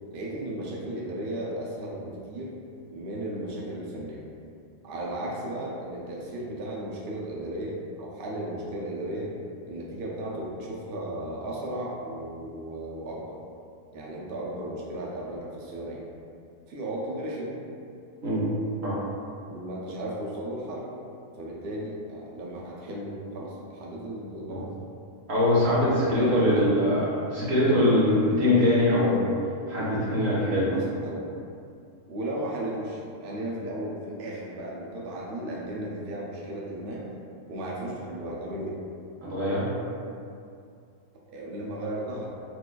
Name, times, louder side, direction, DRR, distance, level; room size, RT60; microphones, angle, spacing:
voice 1, 0.1-2.6 2.9-4.3 4.8-9.3 9.6-13.4 13.9-16.0 16.7-17.5 19.5-20.9 21.4-24.7 25.8-26.8 30.6-31.3 32.1-37.1 37.5-38.8 41.3-42.3, right 1 dB, 75° right, -4 dB, 0.5 m, -35 dB
voice 2, 25.3-29.3 29.7-30.7 39.2-39.7, left 1 dB, 50° right, -8 dB, 1.1 m, -23 dB
4.4 x 2.4 x 2.2 m, 2.4 s
omnidirectional pair, 1.5 m